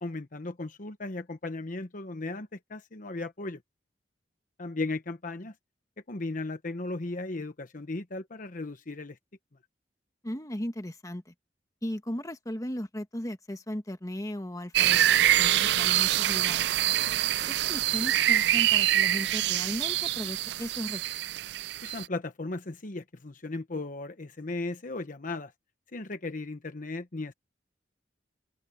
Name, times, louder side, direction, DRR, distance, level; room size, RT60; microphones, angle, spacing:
voice 1, 0.0-3.6 4.6-5.5 6.1-9.2 21.8-25.5 25.9-27.3, left 2 dB, 50° left, 1.1 m, -36 dB
voice 2, 10.2-11.3 11.8-16.7 17.5-21.0, equal, 20° left, 1.6 m, -36 dB
sound 1, 14.7-22.0, right 13 dB, 65° right, 0.4 m, -25 dB
open air
head